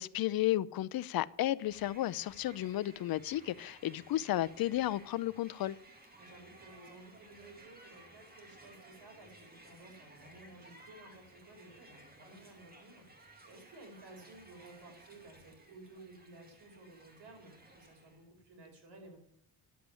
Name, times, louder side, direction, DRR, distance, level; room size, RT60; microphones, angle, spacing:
voice 1, 0.0-5.8, left 14 dB, 55° left, 0.6 m, -33 dB
Crowd, 1.5-18.2, right 1 dB, 20° right, 2.3 m, -58 dB
voice 2, 6.2-19.2, right 2 dB, 75° right, 5.2 m, -55 dB
11.5 x 7.9 x 7.0 m
cardioid pair, 120°, 42 cm